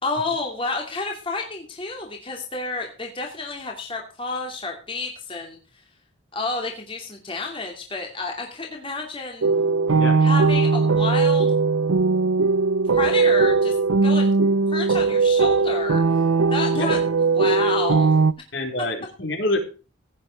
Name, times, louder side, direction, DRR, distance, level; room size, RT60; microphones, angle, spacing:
voice 1, 0.0-5.6 6.3-9.5 10.2-11.6 12.9-13.7 14.0-14.3 14.7-16.2 16.5-17.0 17.3-18.1, left 3 dB, 25° left, 1 dB, 2.5 m, -30 dB
sound 1, 9.4-18.3, right 4 dB, 90° right, 0.7 m, -19 dB
voice 2, 18.5-19.6, left 2 dB, 60° left, 3 dB, 4.2 m, -26 dB
16.5 x 9.4 x 4.5 m, 0.35 s
head